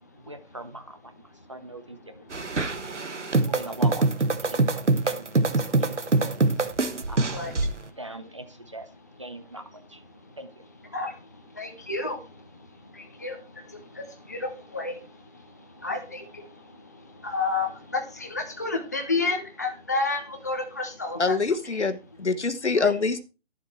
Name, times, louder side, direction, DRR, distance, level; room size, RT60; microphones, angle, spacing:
voice 1, 0.2-1.1 1.5-2.9 3.4-5.2 5.8-6.4 7.1-7.4 7.9-8.9 9.2-10.0 10.4-10.6, right 1 dB, 25° right, 9 dB, 0.7 m, -41 dB
voice 2, 2.2-3.5 4.5-5.1 5.6-5.9 6.8-7.5 10.1-10.4 10.9-21.4 21.7-21.8 22.8-22.9, left 3 dB, 15° left, 3 dB, 0.7 m, -33 dB
sound 1, 2.3-7.7, right 3 dB, 85° right, 1.4 m, -24 dB
voice 3, 21.2-23.2, left 4 dB, 75° left, 11 dB, 1.5 m, -25 dB
12.0 x 7.4 x 4.4 m, 0.30 s
figure-of-eight pair, 165°, 35 cm